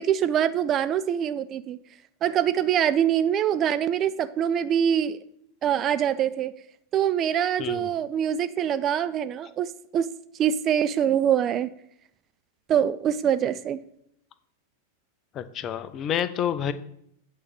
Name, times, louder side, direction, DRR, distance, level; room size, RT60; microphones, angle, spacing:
voice 1, 0.0-1.8 2.2-5.2 5.6-6.5 6.9-10.1 10.4-11.7 12.7-13.8, right 9 dB, 30° right, 13 dB, 0.4 m, -24 dB
voice 2, 7.6-7.9 15.3-16.7, left 9 dB, 30° left, 13 dB, 0.6 m, -28 dB
8.5 x 4.4 x 6.8 m, 0.72 s
figure-of-eight pair, 90°, 0 cm